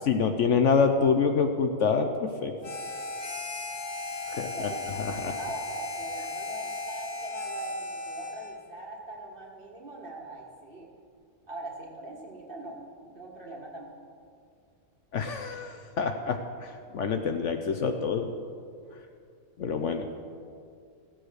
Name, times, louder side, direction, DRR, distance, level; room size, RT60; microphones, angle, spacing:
voice 1, 0.1-2.5 4.4-4.7 5.0-5.4 15.1-18.3 19.6-20.1, left 5 dB, 60° left, 6 dB, 1.0 m, -26 dB
Harmonica, 2.6-8.6, left 3 dB, 40° left, 1.6 m, -36 dB
voice 2, 4.3-5.1 5.4-10.9 11.5-13.9, right 2 dB, 35° right, -2 dB, 2.1 m, -42 dB
15.5 x 7.8 x 6.4 m, 2.3 s
omnidirectional pair, 1.5 m